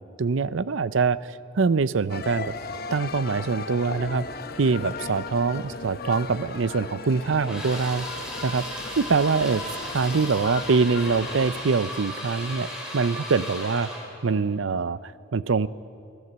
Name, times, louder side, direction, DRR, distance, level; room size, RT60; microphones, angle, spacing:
voice 1, 0.0-2.5 2.9-4.3 4.6-8.1 8.4-12.7 12.9-13.9 14.2-15.7, right 4 dB, 70° right, 17 dB, 0.6 m, -24 dB
sound 1, 2.1-11.6, left 4 dB, 50° left, 1.2 m, -37 dB
sound 2, 7.4-14.1, equal, 5° right, 5.0 m, -35 dB
25.5 x 16.0 x 8.0 m, 2.5 s
head